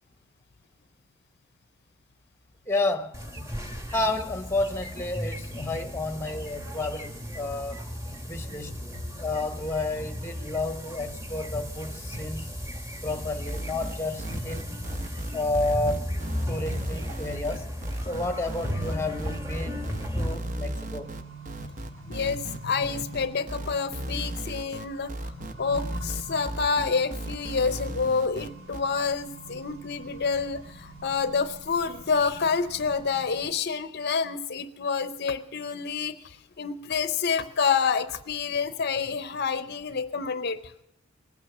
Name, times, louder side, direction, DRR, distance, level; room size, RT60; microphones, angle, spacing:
voice 1, 2.7-3.2 3.9-7.8 8.3-8.7 9.2-12.5 13.0-14.7 15.3-16.1 16.5-17.7 18.0-19.9 20.1-21.1, left 2 dB, 10° left, 0.8 m, -31 dB
sound 1, 3.1-20.3, equal, 15° right, 1.4 m, -35 dB
sound 2, 13.5-28.8, right 1 dB, 35° right, 0.8 m, -36 dB
Accelerating revving vroom, 18.0-33.4, right 1 dB, 65° right, 2.7 m, -45 dB
voice 2, 22.1-25.3 25.6-40.6, left 5 dB, 50° left, 0.6 m, -28 dB
20.5 x 9.1 x 7.1 m
head